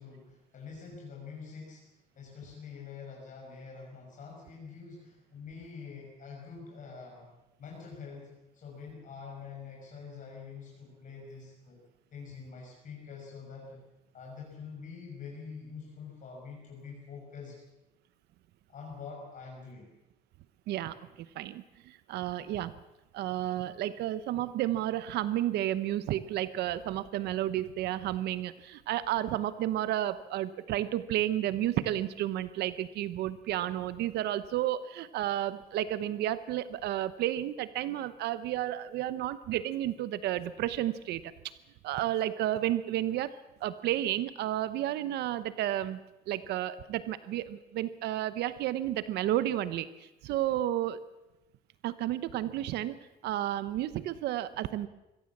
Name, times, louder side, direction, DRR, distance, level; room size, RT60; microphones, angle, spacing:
voice 1, 0.0-7.3 7.6-11.8 12.1-13.8 14.1-17.6 18.7-19.9, left 5 dB, 50° left, -2 dB, 6.2 m, -46 dB
voice 2, 21.3-22.7 23.1-41.3 41.8-43.4 43.6-51.0 51.8-54.9, right 13 dB, 80° right, 14 dB, 0.9 m, -32 dB
23.5 x 16.5 x 7.4 m, 0.97 s
cardioid pair, 110°, 17 cm